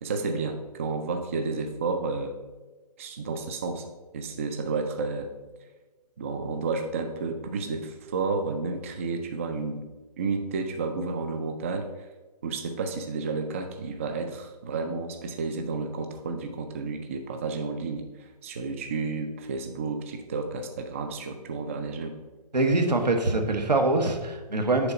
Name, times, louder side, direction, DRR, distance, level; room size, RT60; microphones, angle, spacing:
voice 1, 0.0-2.4 3.0-3.9 4.1-5.3 6.2-9.8 10.2-12.1 12.4-22.1, right 4 dB, 20° right, 6 dB, 0.3 m, -31 dB
voice 2, 22.5-24.9, right 2 dB, 90° right, 4 dB, 1.2 m, -24 dB
6.9 x 4.0 x 5.4 m, 1.2 s
figure-of-eight pair, 145°, 21 cm